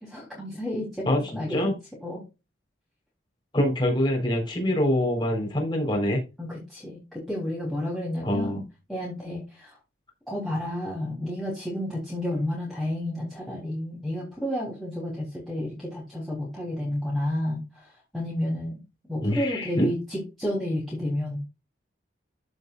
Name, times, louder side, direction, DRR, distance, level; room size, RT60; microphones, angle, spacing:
voice 1, 0.0-1.7 2.0-2.2 6.4-8.6 8.9-9.8 10.3-18.8 19.1-21.4, left 1 dB, ahead, -7 dB, 3.2 m, -31 dB
voice 2, 3.5-6.2 8.2-8.6 19.2-19.9, left 1 dB, 25° left, 0 dB, 3.9 m, -24 dB
13.5 x 5.4 x 2.4 m, 0.27 s
head